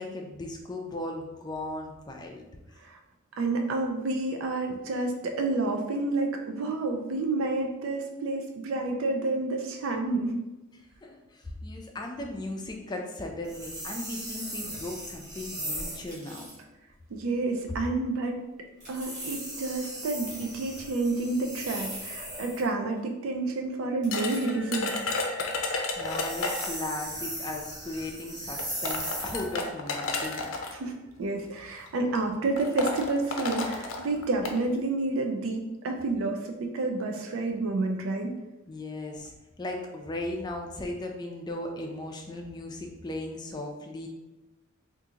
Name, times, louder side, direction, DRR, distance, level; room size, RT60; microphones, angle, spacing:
voice 1, 0.0-2.6 11.0-16.5 25.7-30.5 38.7-44.1, left 1 dB, 20° left, 2 dB, 0.4 m, -37 dB
voice 2, 3.4-10.4 17.1-18.3 18.9-24.9 30.7-38.3, right 2 dB, 80° right, 3 dB, 0.4 m, -29 dB
sound 1, 13.4-16.1 18.9-22.7 25.9-29.6, right 1 dB, 20° right, 0.6 m, -38 dB
sound 2, 15.3-15.4 16.1-16.6 18.8-19.4 20.4-20.5 21.7-22.1 23.0-23.1 24.0-24.5, right 1 dB, 35° right, 1.1 m, -47 dB
sound 3, 24.1-26.9 27.9-28.0 28.6-30.7 31.6-31.9 32.1-32.2 32.6-34.6, left 3 dB, 75° left, 0.5 m, -32 dB
3.6 x 2.5 x 2.8 m, 1.0 s
head